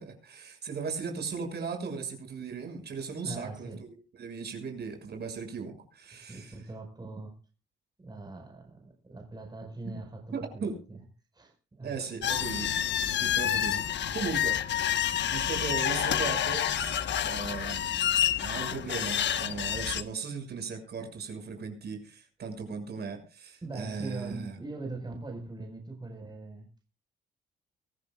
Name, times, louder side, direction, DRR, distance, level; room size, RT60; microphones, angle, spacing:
voice 1, 0.0-6.6 10.3-10.8 11.8-12.7 13.2-13.8 14.1-14.6 15.3-17.9 18.3-24.6, right 5 dB, 55° right, 6.5 m, -37 dB
voice 2, 3.2-3.8 6.3-7.4 8.0-11.0 11.3-12.1 23.6-26.7, right 2 dB, 20° right, 5.0 m, -41 dB
sound 1, 12.2-20.0, left 10 dB, 65° left, 1.3 m, -28 dB
23.5 x 15.0 x 2.4 m
cardioid pair, 90°, 20 cm